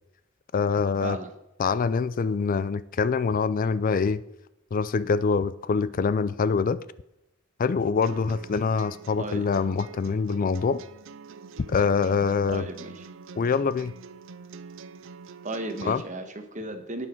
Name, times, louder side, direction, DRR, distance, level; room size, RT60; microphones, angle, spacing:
voice 1, 0.5-1.2 1.6-4.2 4.7-6.8 7.6-10.8 11.7-12.6 13.4-13.9 15.8-16.0, left 5 dB, 40° left, 0.4 m, -25 dB
sound 1, 8.0-16.0, right 5 dB, 65° right, 0.5 m, -46 dB
voice 2, 9.2-9.5 12.5-13.0 15.4-17.1, right 2 dB, 35° right, 1.4 m, -35 dB
18.0 x 6.4 x 4.6 m
head